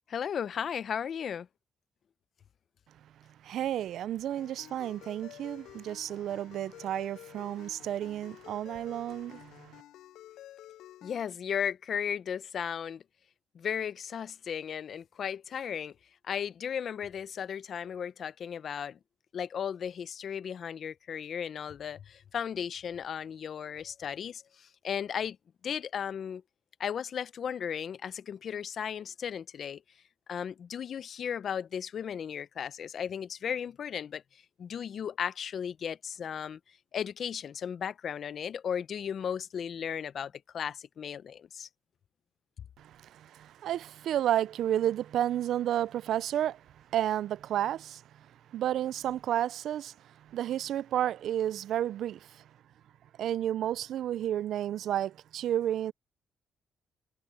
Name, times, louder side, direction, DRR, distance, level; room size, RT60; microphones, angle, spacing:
voice 1, 0.1-1.5 11.0-13.0 13.5-15.9 16.2-19.0 19.3-25.4 25.6-26.4 26.8-29.8 30.3-34.2 34.6-36.6 36.9-41.7, left 8 dB, 55° left, 0.7 m, -35 dB
voice 2, 3.4-9.8 42.8-46.6 46.9-48.0 48.5-49.9 50.2-52.4 53.2-55.9, right 11 dB, 75° right, 0.4 m, -31 dB
Ringtone, 4.4-11.2, left 13 dB, 85° left, 7.5 m, -51 dB
cardioid pair, 90°, 0 cm